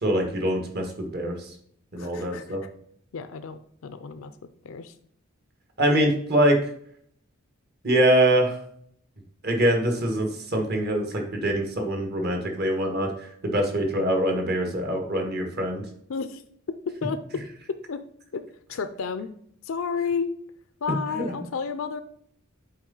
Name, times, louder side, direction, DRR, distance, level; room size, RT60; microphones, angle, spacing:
voice 1, 0.0-1.5 1.9-2.6 5.8-6.7 7.8-8.5 9.4-15.8 21.1-21.2, right 1 dB, 50° right, 3 dB, 1.5 m, -24 dB
voice 2, 2.0-2.7 3.1-4.3 4.6-4.9 16.1-16.4 17.0-17.2 17.9-18.0 18.3-18.4 18.7-19.3 19.6-20.3 20.8-22.0, left 5 dB, 70° left, 10 dB, 0.5 m, -31 dB
7.4 x 4.7 x 3.9 m, 0.65 s
head